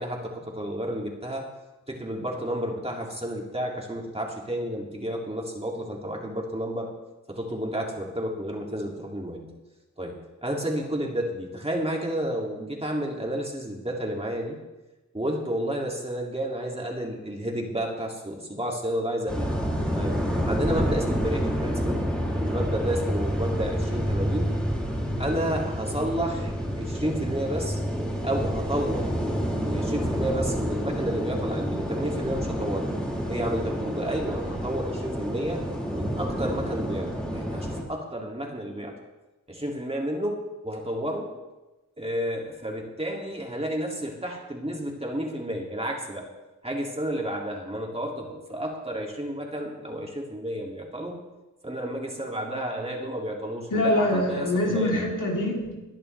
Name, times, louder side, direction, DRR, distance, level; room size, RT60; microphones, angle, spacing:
voice 1, 0.0-1.5 1.9-6.9 7.3-9.5 10.0-14.6 15.1-19.6 19.9-22.0 22.4-24.6 25.2-27.8 28.2-29.1 29.6-32.9 33.3-35.6 35.9-39.0 39.5-41.3 42.0-46.3 46.6-51.2 51.6-55.0, right 1 dB, 20° right, -1 dB, 2.4 m, -31 dB
sound 1, 19.3-37.8, equal, 5° left, 2.8 m, -28 dB
voice 2, 53.7-56.0, left 1 dB, 85° left, -2 dB, 3.3 m, -25 dB
21.0 x 10.5 x 3.3 m, 1.1 s
wide cardioid pair, 105°, 31 cm